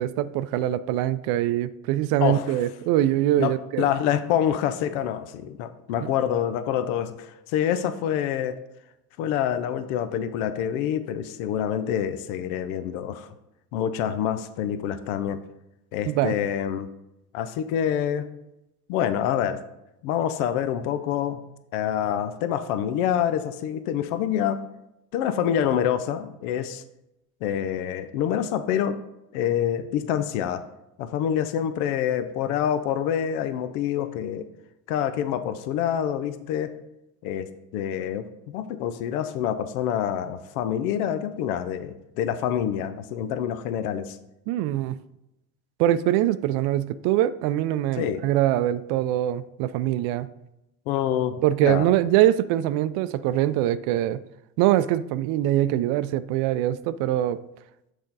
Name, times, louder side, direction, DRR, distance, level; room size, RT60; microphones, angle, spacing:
voice 1, 0.0-3.9 6.0-6.1 16.1-16.4 44.5-45.0 45.8-50.3 51.4-54.2 54.6-57.4, right 13 dB, 70° right, 15 dB, 0.5 m, -23 dB
voice 2, 2.2-2.6 3.4-8.6 9.2-13.3 13.7-15.4 15.9-16.9 17.3-18.3 18.9-19.6 20.0-21.4 21.7-24.6 25.1-26.8 27.4-29.0 29.3-30.6 31.0-34.5 34.9-36.7 37.2-44.2 48.0-48.2 50.9-51.4 51.6-51.9, left 9 dB, 80° left, 11 dB, 0.6 m, -26 dB
6.5 x 4.4 x 4.0 m, 0.88 s
supercardioid pair, 90°, 41 cm